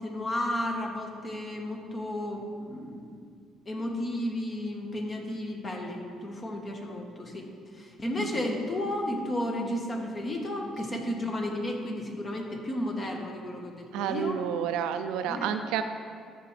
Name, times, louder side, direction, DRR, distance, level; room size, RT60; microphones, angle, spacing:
voice 1, 0.0-3.3 3.7-7.5 7.7-14.4 15.3-15.5, left 1 dB, 30° left, 1 dB, 1.4 m, -33 dB
voice 2, 8.2-8.5 13.9-15.8, right 8 dB, 85° right, 8 dB, 0.4 m, -30 dB
13.5 x 5.8 x 3.3 m, 2.2 s
cardioid pair, 90°, 0 cm